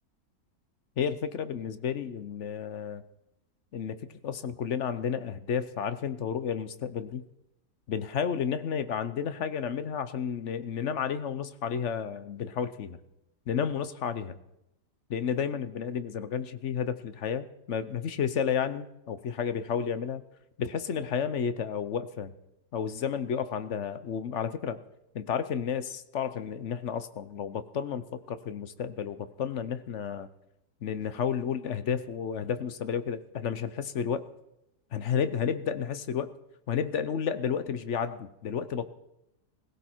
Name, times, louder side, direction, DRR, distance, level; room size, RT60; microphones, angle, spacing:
voice 1, 1.0-3.0 3.7-7.2 7.9-13.0 13.5-14.4 15.1-20.2 20.6-22.3 22.7-24.8 25.1-30.3 30.8-34.3 34.9-36.3 36.7-38.9, left 7 dB, 55° left, 12 dB, 0.9 m, -31 dB
17.5 x 16.5 x 4.5 m, 0.86 s
omnidirectional pair, 1.8 m